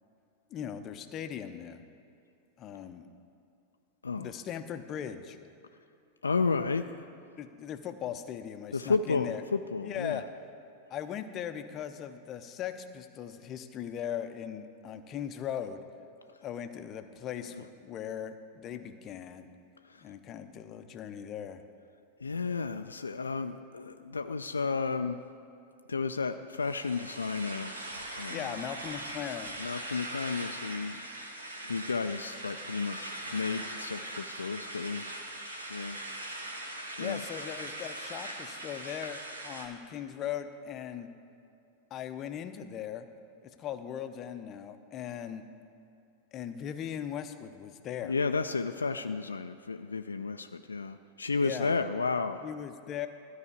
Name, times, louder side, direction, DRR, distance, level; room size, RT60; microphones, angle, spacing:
voice 1, 0.5-1.8 2.6-3.1 4.2-5.4 7.4-9.4 9.8-10.2 10.9-15.8 16.4-19.5 20.0-21.6 28.3-29.6 37.0-41.1 41.9-43.1 43.4-45.4 46.3-48.1 51.4-51.8 52.4-53.1, left 9 dB, 30° left, 9 dB, 0.6 m, -39 dB
voice 2, 6.2-7.1 8.7-10.2 17.5-17.6 19.8-20.1 22.2-25.2 25.9-27.8 28.2-28.6 29.6-31.0 31.6-35.1 35.7-36.0 37.0-37.2 48.0-52.4, left 4 dB, 75° left, 8 dB, 0.3 m, -32 dB
sound 1, 26.6-39.7, right 1 dB, 80° right, 1.2 m, -41 dB
13.0 x 4.9 x 8.1 m, 2.6 s
figure-of-eight pair, 90°, 0 cm